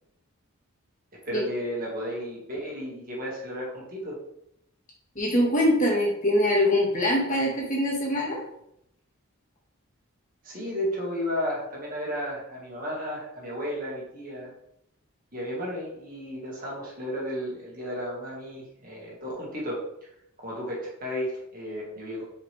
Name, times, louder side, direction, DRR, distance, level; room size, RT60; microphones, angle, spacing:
voice 1, 1.2-4.2 10.4-14.5 15.3-19.9 20.4-22.2, equal, 40° right, -4 dB, 2.2 m, -33 dB
voice 2, 5.2-8.4, left 1 dB, 35° left, -3 dB, 2.0 m, -23 dB
6.9 x 5.1 x 3.6 m, 0.75 s
head